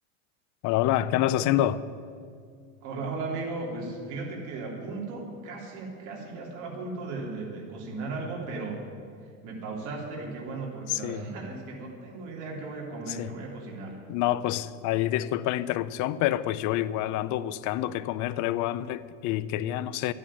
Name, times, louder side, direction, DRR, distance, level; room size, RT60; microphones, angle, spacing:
voice 1, 0.6-1.8 10.9-11.2 13.1-13.3 14.1-20.1, left 13 dB, 50° left, 16 dB, 0.6 m, -27 dB
voice 2, 2.8-8.8 9.4-13.9, right 3 dB, 50° right, -2 dB, 3.1 m, -36 dB
10.5 x 8.8 x 10.0 m, 2.2 s
supercardioid pair, 140°, 40 cm